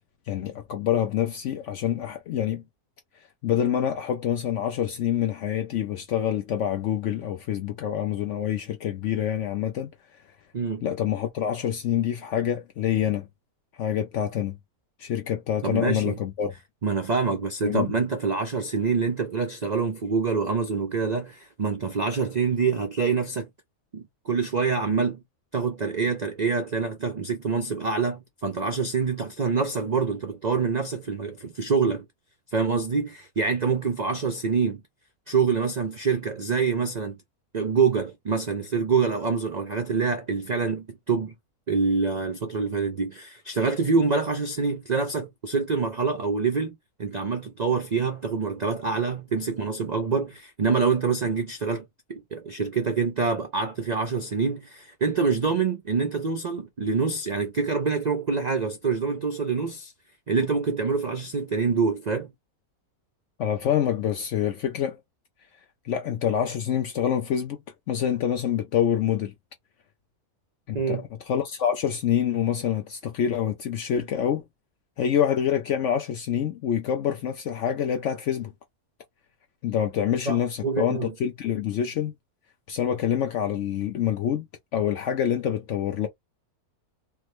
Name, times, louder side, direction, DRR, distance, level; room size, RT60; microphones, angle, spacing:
voice 1, 0.3-2.6 3.4-9.9 10.8-13.3 13.8-14.6 15.0-16.5 17.6-17.9 63.4-65.0 65.8-69.3 70.7-74.4 75.0-78.5 79.6-82.1 82.7-84.5 84.7-86.1, left 9 dB, 65° left, 0.8 m, -26 dB
voice 2, 15.6-16.2 16.8-23.5 23.9-25.2 25.5-32.0 32.5-34.8 35.3-37.2 37.5-41.3 41.7-51.8 52.1-59.9 60.3-62.3 70.7-71.0 80.3-81.1, right 5 dB, 75° right, 0.4 m, -26 dB
3.4 x 2.1 x 3.0 m
omnidirectional pair, 1.6 m